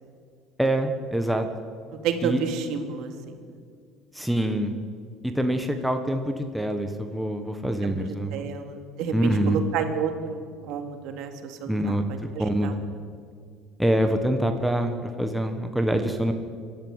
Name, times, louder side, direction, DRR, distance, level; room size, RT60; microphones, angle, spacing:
voice 1, 0.6-1.5 2.2-2.4 4.1-4.7 5.2-8.5 9.1-9.6 11.7-12.0 12.4-12.7 13.8-16.3, right 1 dB, ahead, 5 dB, 1.3 m, -25 dB
voice 2, 2.0-3.4 7.8-7.9 8.3-10.4 10.7-12.7, right 6 dB, 60° right, 5 dB, 2.7 m, -30 dB
24.0 x 13.0 x 9.8 m, 2.1 s
cardioid pair, 155°, 0 cm